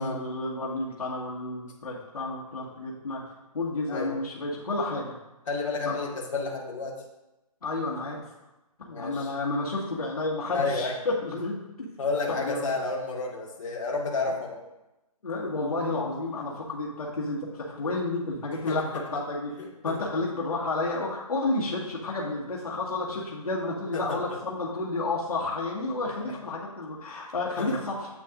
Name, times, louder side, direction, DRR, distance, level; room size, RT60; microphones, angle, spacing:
voice 1, 0.0-3.2 3.5-5.1 5.9-6.0 7.6-8.2 8.8-11.6 12.3-12.7 15.2-18.8 19.1-19.5 19.8-28.1, left 2 dB, 80° left, -4 dB, 1.9 m, -31 dB
voice 2, 3.9-4.2 5.5-7.0 8.9-9.3 10.5-10.9 12.0-14.6 18.5-19.0 19.6-20.0 23.9-24.2 26.1-26.4 27.6-27.8, left 3 dB, 55° left, -3 dB, 2.0 m, -31 dB
8.7 x 8.0 x 2.6 m, 0.98 s
hypercardioid pair, 155°, 19 cm